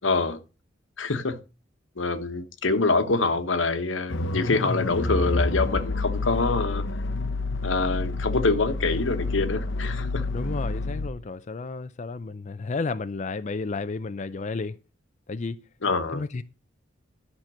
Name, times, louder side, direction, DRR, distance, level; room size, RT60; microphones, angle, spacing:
voice 1, 0.0-0.4 1.0-1.4 2.0-6.8 7.6-10.3 15.8-16.2, left 3 dB, 85° left, 1.2 m, -25 dB
sound 1, 4.1-11.1, left 2 dB, 70° left, 0.9 m, -28 dB
voice 2, 10.3-14.8 15.3-15.6 16.1-16.4, left 3 dB, 40° left, 0.5 m, -32 dB
11.5 x 5.9 x 6.2 m
head